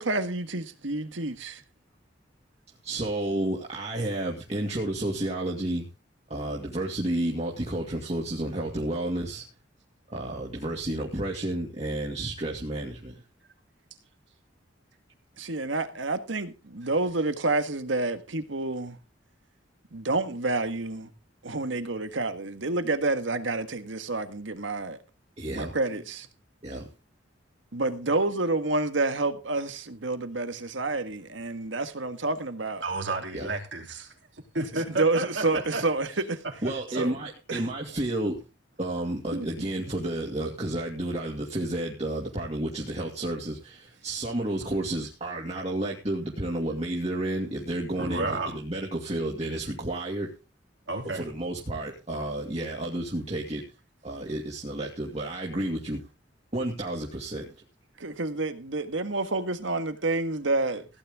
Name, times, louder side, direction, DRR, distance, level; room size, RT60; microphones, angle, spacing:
voice 1, 0.0-1.6 15.4-19.0 19.9-21.1 21.4-25.0 25.5-26.3 27.7-32.8 34.6-36.4 36.9-37.1 37.5-37.6 58.0-60.9, right 2 dB, 85° right, 1.7 m, -29 dB
voice 2, 2.8-5.9 6.3-9.4 10.1-13.2 25.4-25.7 26.6-26.9 33.3-33.5 35.5-35.6 36.6-38.4 38.8-50.3 51.1-53.6 54.0-56.0 56.5-57.6, right 1 dB, 35° right, 2.4 m, -31 dB
voice 3, 32.8-34.1 34.5-35.8 39.3-39.7 48.0-48.5 50.9-51.2, right 2 dB, 70° right, 3.2 m, -31 dB
16.0 x 10.0 x 3.7 m
head